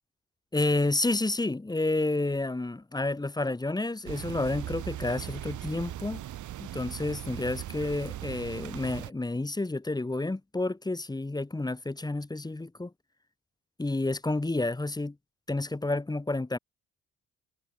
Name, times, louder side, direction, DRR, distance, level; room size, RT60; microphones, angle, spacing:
voice 1, 0.5-6.2 6.6-12.9 13.8-15.2 15.5-16.6, left 2 dB, 15° left, 1.7 m, -30 dB
sound 1, 4.1-9.1, right 13 dB, 75° right, 2.7 m, -39 dB
cardioid pair, 90°, 30 cm